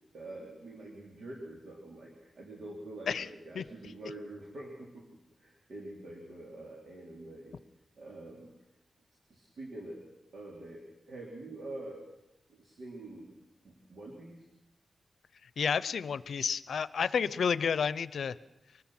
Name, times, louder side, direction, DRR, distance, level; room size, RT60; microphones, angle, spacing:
voice 1, 0.1-7.6 8.0-8.5 9.3-10.0 10.3-12.0 12.5-13.3 13.6-14.4, right 2 dB, 70° right, -1 dB, 3.6 m, -46 dB
voice 2, 15.6-18.4, left 6 dB, 85° left, 17 dB, 0.6 m, -30 dB
24.0 x 19.0 x 5.9 m, 0.87 s
wide cardioid pair, 130°, 0 cm